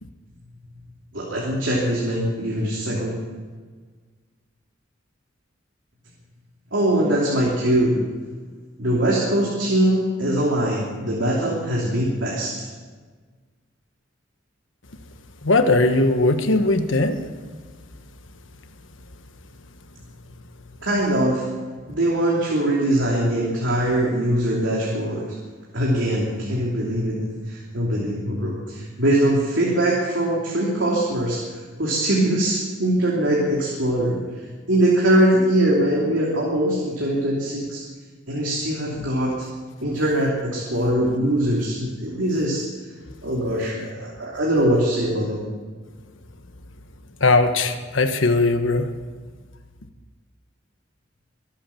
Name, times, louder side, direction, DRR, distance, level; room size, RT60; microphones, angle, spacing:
voice 1, 1.1-3.2 6.7-8.0 8.8-12.7 20.8-21.5 21.9-25.3 25.7-31.4 31.8-34.2 34.7-37.8 38.3-39.5 39.8-42.7 43.2-45.4, right 1 dB, 75° right, -3 dB, 2.9 m, -22 dB
voice 2, 15.4-17.2 47.2-48.9, left 2 dB, 90° left, 7 dB, 1.3 m, -19 dB
23.5 x 8.7 x 7.0 m, 1.5 s
head